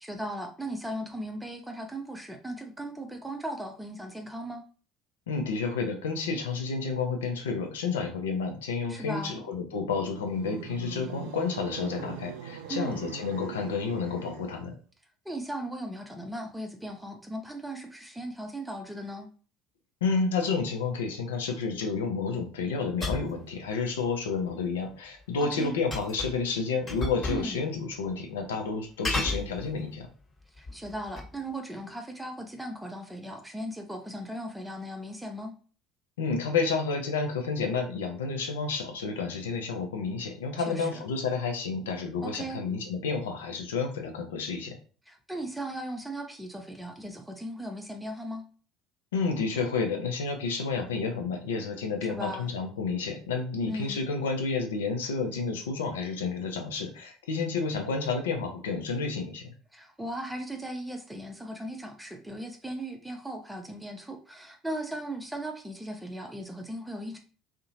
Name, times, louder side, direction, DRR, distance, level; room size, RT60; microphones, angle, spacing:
voice 1, 0.0-4.6 8.9-9.4 12.7-13.1 15.2-19.3 25.4-25.8 27.3-27.6 30.6-35.6 40.7-41.0 42.2-42.6 45.1-48.5 52.0-52.5 53.7-54.0 59.7-67.2, right 1 dB, 5° right, 3 dB, 0.6 m, -37 dB
voice 2, 5.3-14.7 20.0-30.1 36.2-44.8 49.1-59.5, left 4 dB, 70° left, 4 dB, 0.4 m, -30 dB
sound 1, 10.1-14.8, right 8 dB, 65° right, 0.3 m, -42 dB
sound 2, 23.0-23.4 25.9-26.4 26.9-27.5 27.8-27.9 29.0-30.0 30.6-31.4, left 2 dB, 30° left, 1.0 m, -33 dB
2.7 x 2.1 x 2.7 m, 0.39 s
figure-of-eight pair, 60°, 0 cm